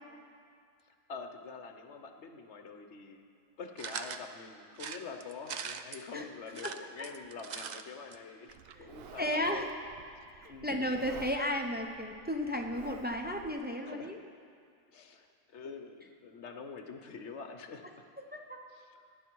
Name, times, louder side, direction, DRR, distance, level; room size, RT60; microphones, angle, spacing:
voice 1, 1.1-3.2 3.6-9.7 10.5-11.0 13.8-14.1 14.9-17.8 18.7-18.9, left 5 dB, 60° left, 6 dB, 1.1 m, -46 dB
sound 1, 3.8-4.2 4.8-6.0 6.5-7.8 8.1-8.2 8.4-8.5, right 7 dB, 85° right, 0.3 m, -41 dB
Livestock farm animals working animals, 8.5-13.5, right 7 dB, 60° right, 0.7 m, -52 dB
voice 2, 9.2-9.7 10.3-14.2 18.3-18.6, equal, 15° right, 2 dB, 0.4 m, -34 dB
17.5 x 10.5 x 4.6 m, 2.3 s
omnidirectional pair, 1.5 m